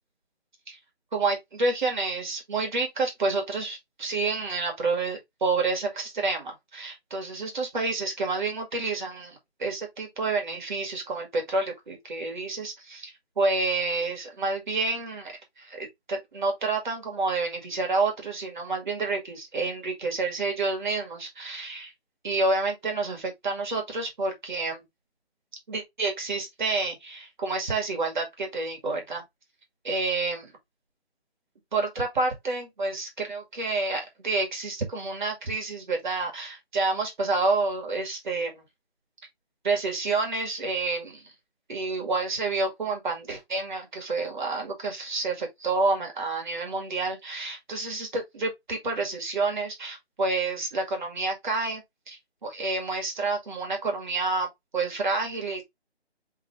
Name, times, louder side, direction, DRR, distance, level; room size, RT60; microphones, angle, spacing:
voice 1, 1.1-21.9 22.2-24.8 25.7-29.2 29.8-30.5 31.7-38.6 39.6-41.3 41.7-54.5 54.7-55.6, right 3 dB, 45° right, 1.9 m, -29 dB
4.1 x 3.7 x 3.0 m
hypercardioid pair, 170°, 33 cm